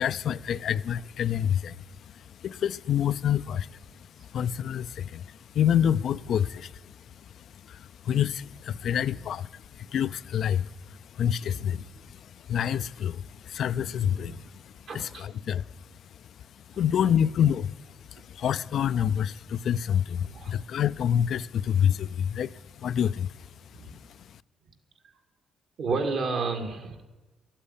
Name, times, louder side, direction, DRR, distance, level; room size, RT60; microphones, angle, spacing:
voice 1, 0.0-23.5 23.9-24.4, left 9 dB, 65° left, 0.4 m, -28 dB
voice 2, 8.8-9.2 11.4-11.8 13.8-14.4 14.9-15.3 17.0-17.2 20.2-20.5 23.7-24.0 25.8-27.0, right 4 dB, 65° right, 2.2 m, -33 dB
13.0 x 8.7 x 9.9 m
cardioid pair, 90°, 0 cm